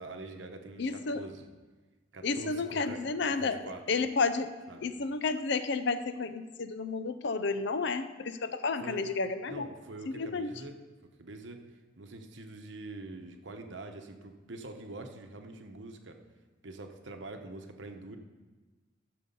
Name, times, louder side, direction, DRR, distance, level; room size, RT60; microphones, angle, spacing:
voice 1, 0.0-1.5 2.1-3.8 4.7-4.9 8.8-9.0 9.5-10.8 11.2-11.6 12.0-16.2 16.6-18.2, right 2 dB, 70° right, 5 dB, 1.0 m, -45 dB
voice 2, 0.8-1.2 2.2-4.5 4.8-9.7 10.1-10.5, left 4 dB, 65° left, 11 dB, 0.6 m, -31 dB
13.5 x 6.8 x 5.4 m, 1.3 s
head